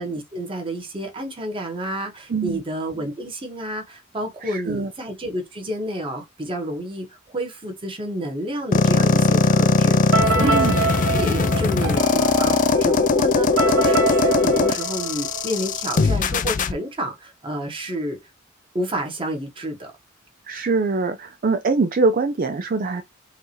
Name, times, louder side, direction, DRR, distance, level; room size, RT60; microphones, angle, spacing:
voice 1, 0.0-18.2 18.7-19.9, right 1 dB, 25° right, 1.4 m, -30 dB
voice 2, 2.3-2.6 4.4-4.9 10.4-10.8 20.4-23.0, right 3 dB, 45° right, 0.4 m, -23 dB
sound 1, 8.7-16.7, left 4 dB, 40° left, 0.4 m, -19 dB
sound 2, 10.1-15.9, right 4 dB, 75° right, 1.6 m, -25 dB
5.7 x 2.7 x 3.0 m
head